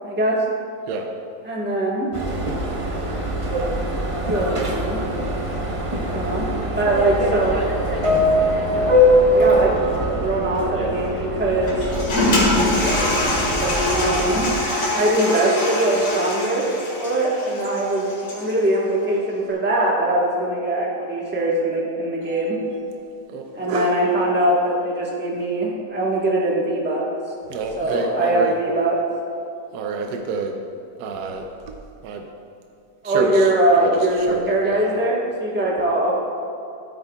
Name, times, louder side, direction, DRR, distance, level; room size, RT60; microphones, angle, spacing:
voice 1, 0.0-0.4 1.4-2.1 4.2-5.0 6.1-7.6 9.3-9.8 10.2-11.8 13.9-14.5 14.9-16.7 17.0-22.6 23.5-27.1 27.8-29.0 33.0-36.1, right 1 dB, 5° right, -4 dB, 1.2 m, -21 dB
Subway metro underground, 2.1-14.5, equal, 30° right, 0.7 m, -22 dB
Toilet flush, 11.7-18.6, left 1 dB, 55° left, 2.2 m, -23 dB
voice 2, 22.9-24.0 27.5-28.6 29.7-30.6 31.0-32.3 33.0-35.0, right 3 dB, 85° right, 3 dB, 1.2 m, -29 dB
12.5 x 9.0 x 2.3 m, 2.5 s
omnidirectional pair, 1.7 m